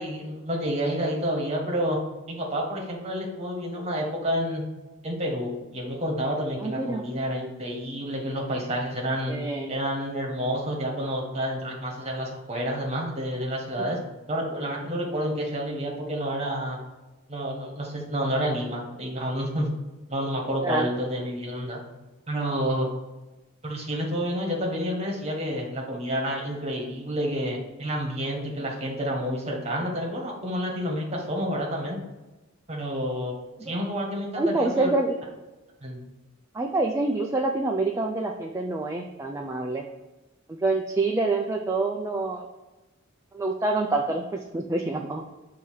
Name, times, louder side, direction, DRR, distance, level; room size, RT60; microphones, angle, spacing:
voice 1, 0.0-2.0 2.3-4.6 5.0-9.3 9.7-14.0 14.3-16.8 17.3-19.7 20.1-21.8 22.3-22.9 23.6-32.0 32.7-33.3 33.6-35.0 35.8-36.1, equal, 30° right, 0 dB, 1.3 m, -29 dB
voice 2, 6.6-7.0 9.3-9.7 20.6-20.9 33.6-33.8 34.4-35.2 36.5-39.8 40.6-42.4 43.3-45.2, right 2 dB, 15° right, 1 dB, 0.3 m, -26 dB
6.3 x 2.8 x 5.5 m, 1.1 s
head